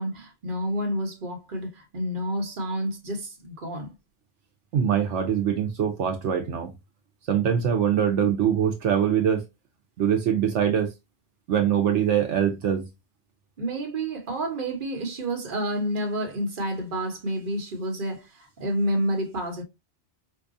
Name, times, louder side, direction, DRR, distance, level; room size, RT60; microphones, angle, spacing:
voice 1, 0.0-3.9 13.6-19.6, right 1 dB, 45° right, 1.2 m, -29 dB
voice 2, 4.7-6.7 7.3-9.4 10.0-10.9 11.5-12.8, right 8 dB, 80° right, 1.0 m, -23 dB
4.6 x 2.4 x 2.5 m
omnidirectional pair, 1.2 m